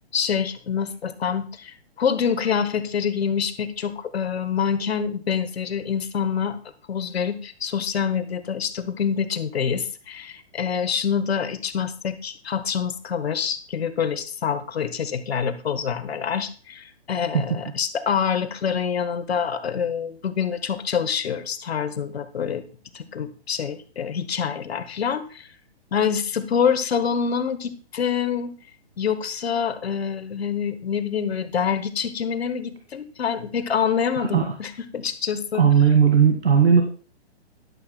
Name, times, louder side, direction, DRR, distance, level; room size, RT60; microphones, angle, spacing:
voice 1, 0.1-6.6 6.9-22.6 22.9-25.5 25.9-28.5 29.0-35.6, left 7 dB, 70° left, 11 dB, 1.3 m, -26 dB
voice 2, 35.6-36.8, right 7 dB, 80° right, 4 dB, 1.8 m, -16 dB
13.0 x 11.0 x 2.2 m, 0.39 s
hypercardioid pair, 135°, 32 cm